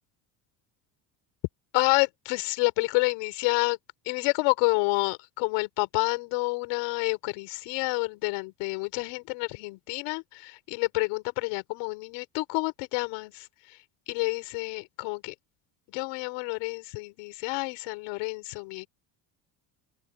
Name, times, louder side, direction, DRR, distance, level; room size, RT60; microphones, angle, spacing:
voice 1, 1.7-3.8 4.1-13.8 14.1-15.3 15.9-18.9, left 26 dB, 90° left, 5.4 m, -29 dB
open air
cardioid pair, 115°, 46 cm